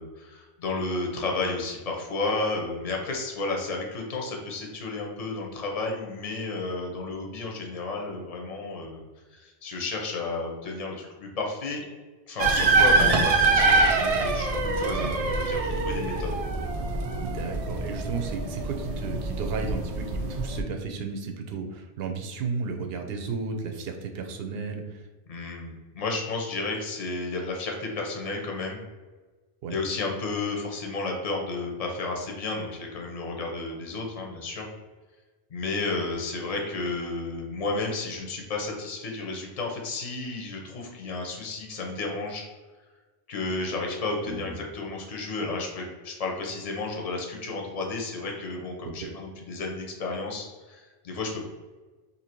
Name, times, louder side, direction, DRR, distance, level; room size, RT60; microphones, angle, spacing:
voice 1, 0.0-9.0 9.3-11.8 12.3-16.3 25.3-28.8 29.7-34.7 35.5-42.5 43.3-51.5, left 3 dB, 40° left, 0 dB, 0.7 m, -32 dB
sound 1, 12.4-20.6, right 3 dB, 55° right, 0.4 m, -24 dB
voice 2, 17.2-25.0 29.6-29.8 44.3-44.6 48.8-48.9, right 4 dB, 70° right, 4 dB, 0.8 m, -33 dB
2.8 x 2.7 x 4.4 m, 1.3 s
omnidirectional pair, 1.1 m